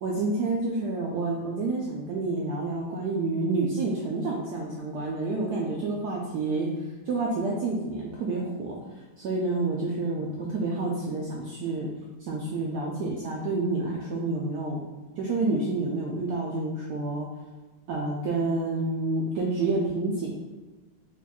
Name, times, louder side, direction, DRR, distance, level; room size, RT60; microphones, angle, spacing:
voice 1, 0.0-6.7 7.1-8.8 9.2-11.9 12.2-14.8 15.2-17.3 17.9-20.3, right 3 dB, 80° right, -3 dB, 0.9 m, -29 dB
3.7 x 3.4 x 2.3 m, 1.3 s
omnidirectional pair, 2.2 m